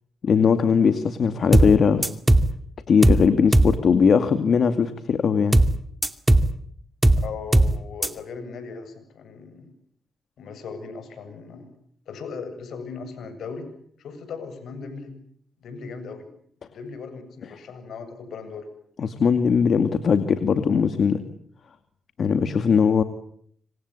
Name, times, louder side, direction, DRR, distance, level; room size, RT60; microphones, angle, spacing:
voice 1, 0.2-2.0 2.9-5.6 19.0-21.2 22.2-23.0, left 6 dB, 60° left, 9 dB, 2.2 m, -20 dB
sound 1, 1.5-1.8 2.0-2.5 3.0-3.3 3.5-3.8 5.5-5.8 6.0-6.5 7.0-7.3 7.5-7.8 8.0-8.1, right 1 dB, 10° right, 2.4 m, -17 dB
voice 2, 7.2-9.7 10.4-11.7 12.1-13.7 14.0-15.1 15.6-16.3 16.6-18.7, left 5 dB, 75° left, 9 dB, 7.8 m, -38 dB
26.5 x 25.0 x 8.4 m, 0.66 s
cardioid pair, 85°, 0 cm